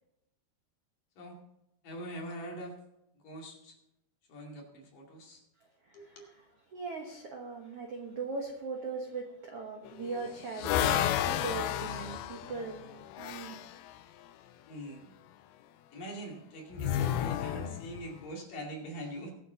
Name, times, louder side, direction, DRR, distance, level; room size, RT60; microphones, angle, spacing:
voice 1, 1.8-2.7 3.2-3.8 4.3-5.4 5.9-6.2 14.7-15.1 15.9-19.3, right 1 dB, 55° left, 0 dB, 3.8 m, -43 dB
voice 2, 5.8-6.3 6.7-13.5, right 4 dB, 65° right, 1 dB, 1.5 m, -40 dB
sound 1, 9.9-13.7 16.8-18.2, left 11 dB, 80° left, 2.3 m, -32 dB
22.0 x 8.0 x 4.0 m, 0.88 s
omnidirectional pair, 4.9 m